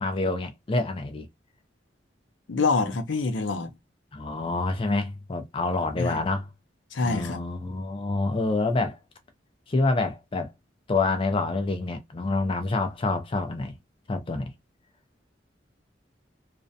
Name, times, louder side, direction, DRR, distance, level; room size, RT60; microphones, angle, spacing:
voice 1, 0.0-1.3 4.1-6.5 7.0-9.0 9.7-10.5 10.9-13.7 14.1-14.5, left 3 dB, 30° left, 0.4 m, -27 dB
voice 2, 2.5-3.7 6.0-6.2 6.9-7.4, left 3 dB, 85° left, 0.5 m, -26 dB
2.4 x 2.1 x 2.5 m
head